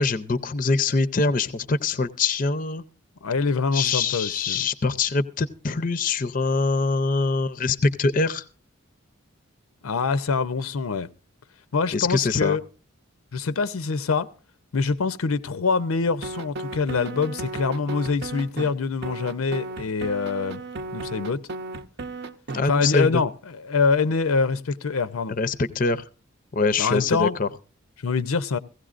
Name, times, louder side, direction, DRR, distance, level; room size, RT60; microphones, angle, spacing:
voice 1, 0.0-2.8 3.7-8.4 11.9-12.6 22.5-23.2 25.3-26.0 26.5-27.5, left 3 dB, 40° left, 0.5 m, -24 dB
voice 2, 3.2-4.7 9.8-11.1 11.7-12.6 13.3-14.3 14.7-20.6 20.9-21.4 22.6-25.4 26.8-27.4 28.0-28.6, left 4 dB, 90° left, 0.6 m, -25 dB
sound 1, 16.2-18.7 19.0-22.6, right 2 dB, 50° right, 0.7 m, -34 dB
16.0 x 16.0 x 2.5 m
head